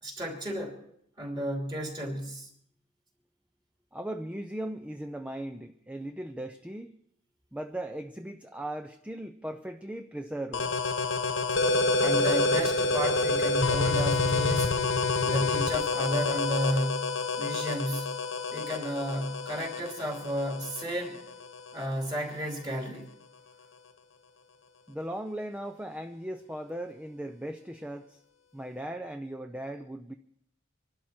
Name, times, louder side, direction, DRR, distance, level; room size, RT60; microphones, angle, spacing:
voice 1, 0.0-0.8 1.2-2.5 12.0-14.8 15.2-18.2 18.5-21.2 21.7-23.1, equal, 20° right, 2.8 m, -33 dB
voice 2, 3.9-6.9 7.5-10.7 24.9-28.2 28.5-30.1, right 1 dB, 5° right, 0.5 m, -38 dB
sound 1, 10.5-21.9, left 3 dB, 65° left, 1.3 m, -28 dB
25.0 x 12.0 x 4.4 m
head